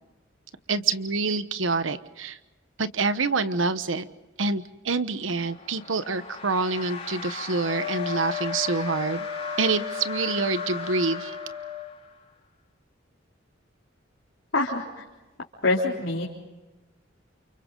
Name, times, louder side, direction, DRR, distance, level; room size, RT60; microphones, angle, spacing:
voice 1, 0.7-2.4 2.8-4.1 4.4-9.3 9.6-11.4, right 4 dB, 75° right, 12 dB, 1.1 m, -26 dB
sound 1, 5.2-12.3, left 5 dB, 30° left, 5.6 m, -38 dB
Wind instrument woodwind instrument, 7.6-11.9, left 7 dB, 20° right, 7.5 m, -35 dB
voice 2, 14.5-15.0 15.6-16.2, left 2 dB, 80° left, -5 dB, 3.7 m, -25 dB
29.5 x 29.0 x 3.9 m, 1.1 s
head